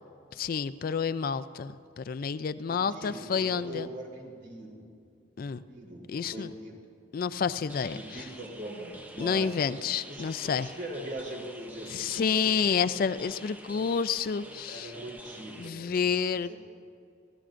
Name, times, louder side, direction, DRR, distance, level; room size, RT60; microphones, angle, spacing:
voice 1, 0.3-3.9 5.4-5.6 6.1-6.5 7.1-8.2 9.2-10.7 11.9-14.9 15.6-16.5, left 6 dB, 50° left, 14 dB, 0.3 m, -29 dB
voice 2, 2.7-4.8 5.4-6.8 7.9-9.5 10.0-12.5 12.8-12.9 14.7-16.6, right 1 dB, 75° right, -2 dB, 3.5 m, -42 dB
sound 1, 7.7-15.7, right 1 dB, 10° right, 0.6 m, -47 dB
26.0 x 15.5 x 2.5 m, 2.4 s
head